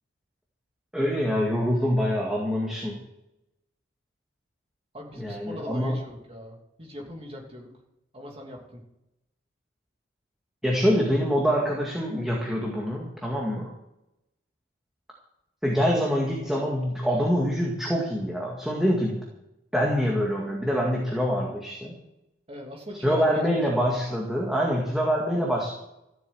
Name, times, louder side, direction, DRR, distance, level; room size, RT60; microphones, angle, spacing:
voice 1, 0.9-3.0 5.2-6.0 10.6-13.7 15.6-19.2 19.7-21.9 23.0-25.7, equal, ahead, -3 dB, 2.1 m, -25 dB
voice 2, 4.9-7.7 8.1-8.8 22.5-23.9, left 1 dB, 30° right, 0 dB, 3.0 m, -40 dB
14.5 x 8.1 x 7.9 m, 0.88 s
head